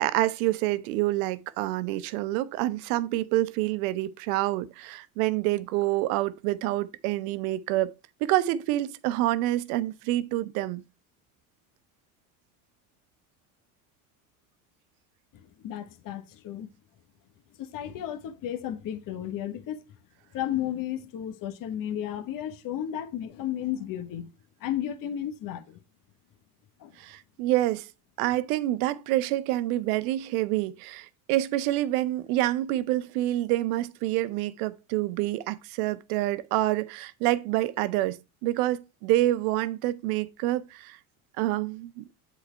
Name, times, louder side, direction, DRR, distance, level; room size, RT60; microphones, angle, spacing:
voice 1, 0.0-7.9 8.2-10.8 27.0-27.9 28.2-41.0 41.4-42.0, right 16 dB, 75° right, 0.7 m, -27 dB
voice 2, 15.3-16.7 17.6-19.8 20.3-24.3 24.6-25.8 26.8-26.9, left 11 dB, 50° left, 1.1 m, -33 dB
7.9 x 4.2 x 4.3 m
supercardioid pair, 85°, 44 cm